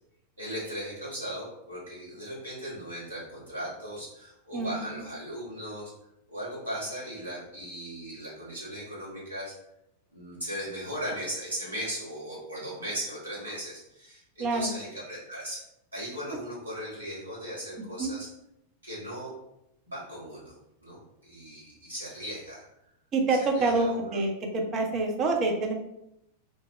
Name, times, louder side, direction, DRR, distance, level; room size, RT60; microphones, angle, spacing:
voice 1, 0.4-5.9 6.3-9.5 10.1-15.6 15.9-18.3 18.8-19.4 19.8-22.6 23.4-24.2, equal, 80° right, -8 dB, 1.4 m, -38 dB
voice 2, 4.5-5.0 14.4-14.7 18.0-18.1 23.1-25.7, right 3 dB, 30° right, 2 dB, 0.6 m, -27 dB
3.3 x 2.0 x 3.0 m, 0.81 s
figure-of-eight pair, 90°, 0 cm